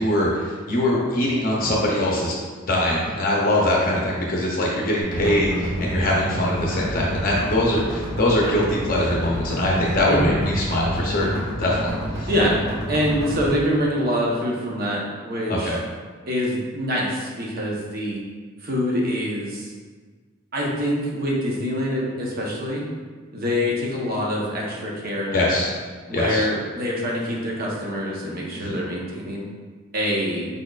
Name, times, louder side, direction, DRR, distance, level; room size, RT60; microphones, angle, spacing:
voice 1, 0.0-2.3 2.6-12.3 15.5-15.8 25.3-25.7 26.1-26.5 28.5-28.8, left 1 dB, 45° left, -3 dB, 0.6 m, -22 dB
sound 1, 5.0-13.5, equal, 90° right, 1.2 m, -29 dB
voice 2, 12.9-15.8 16.2-18.2 18.6-19.7 20.5-22.8 23.3-25.6 26.1-29.4 29.9-30.5, equal, 50° right, -3 dB, 0.9 m, -25 dB
5.1 x 4.3 x 2.4 m, 1.5 s
head